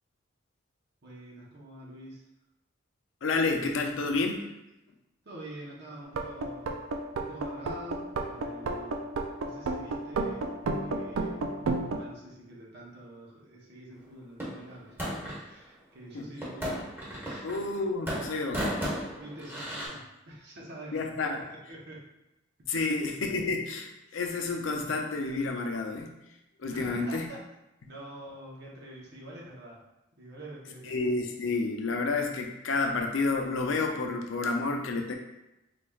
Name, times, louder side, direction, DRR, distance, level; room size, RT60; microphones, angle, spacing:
voice 1, 1.0-2.3 5.2-6.9 7.1-9.2 9.4-11.6 12.0-16.8 17.2-17.5 19.2-21.0 21.7-22.1 22.8-22.9 26.7-27.4 27.8-29.8 30.2-31.0, right 1 dB, 60° right, -3 dB, 1.0 m, -46 dB
voice 2, 3.2-4.5 16.1-16.3 17.4-18.8 20.9-21.4 22.7-26.1 26.6-27.3 30.8-35.1, left 3 dB, 75° left, 2 dB, 0.5 m, -30 dB
sound 1, 6.1-12.0, right 3 dB, 85° right, 0.4 m, -32 dB
sound 2, 14.4-15.5 16.4-17.8 18.1-19.9, equal, 10° right, 1.2 m, -34 dB
4.0 x 3.2 x 2.3 m, 0.91 s
head